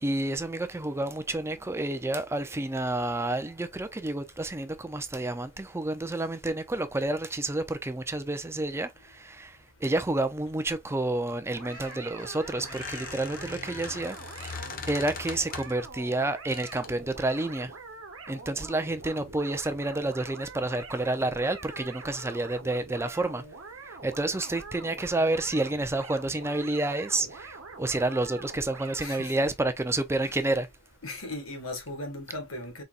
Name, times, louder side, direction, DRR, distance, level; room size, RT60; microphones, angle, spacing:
voice 1, 0.0-17.7 18.3-23.4 23.9-30.7, right 2 dB, 15° right, 0.5 m, -30 dB
Squeak, 11.5-15.9 16.5-17.0, left 5 dB, 45° left, 0.9 m, -41 dB
sound 1, 11.5-29.3, right 4 dB, 75° right, 1.0 m, -45 dB
voice 2, 29.0-29.5 30.2-30.5 31.0-32.8, left 2 dB, 90° left, 1.7 m, -38 dB
4.1 x 3.9 x 2.4 m
head